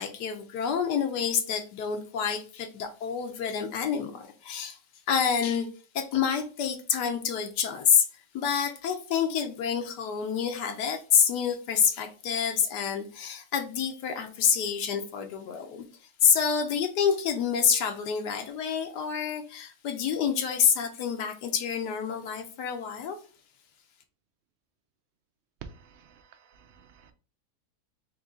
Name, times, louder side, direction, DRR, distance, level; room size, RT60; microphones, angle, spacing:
voice 1, 0.0-4.8 5.1-5.7 5.9-8.1 8.3-15.8 16.2-23.2, left 7 dB, 80° left, 1.2 m, -27 dB
voice 2, 25.6-27.1, right 6 dB, 85° right, 0.5 m, -49 dB
3.8 x 3.0 x 3.7 m
omnidirectional pair, 1.8 m